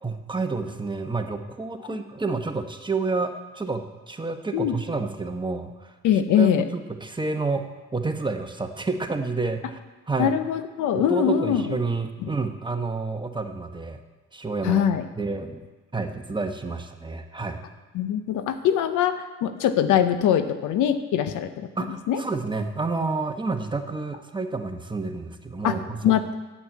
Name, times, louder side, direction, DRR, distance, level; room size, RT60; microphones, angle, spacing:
voice 1, 0.0-5.9 6.3-9.8 10.1-10.3 10.9-14.0 14.3-14.8 15.2-15.6 15.9-17.6 21.8-26.3, right 3 dB, 15° right, 5 dB, 1.1 m, -29 dB
voice 2, 6.0-6.6 10.2-11.8 12.2-12.3 14.6-15.0 17.9-22.2 25.6-25.8 26.0-26.3, left 9 dB, 85° left, 9 dB, 0.8 m, -23 dB
8.4 x 7.6 x 8.3 m, 1.2 s
cardioid pair, 90°, 30 cm